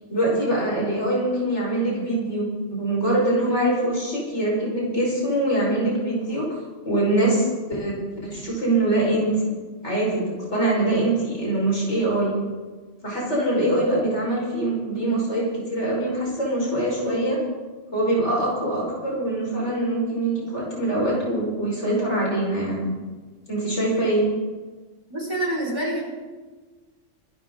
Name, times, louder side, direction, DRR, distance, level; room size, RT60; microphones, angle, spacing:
voice 1, 0.1-6.5 6.8-8.0 8.2-9.3 9.8-12.3 13.0-17.4 17.9-22.8 23.5-24.3, right 1 dB, 60° left, -4 dB, 5.6 m, -23 dB
voice 2, 25.1-26.0, right 1 dB, 20° right, -4 dB, 5.6 m, -26 dB
25.5 x 12.5 x 3.9 m, 1.3 s
omnidirectional pair, 1.3 m